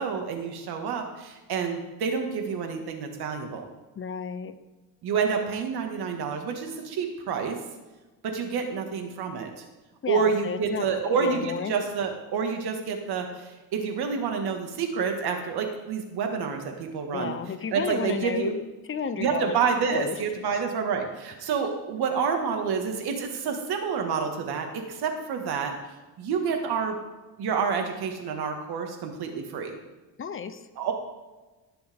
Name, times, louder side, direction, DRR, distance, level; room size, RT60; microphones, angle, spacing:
voice 1, 0.0-3.7 5.0-7.6 8.2-9.6 10.1-17.4 17.7-18.5 19.2-25.7 26.2-27.0 27.4-29.8 30.8-30.9, right 6 dB, 80° right, 4 dB, 2.0 m, -28 dB
voice 2, 4.0-4.6 10.0-10.9 11.2-11.7 17.1-18.6 18.9-19.5 19.9-20.2 30.2-30.6, left 6 dB, 35° left, 10 dB, 0.8 m, -32 dB
19.5 x 7.0 x 3.7 m, 1.2 s
cardioid pair, 110°, 38 cm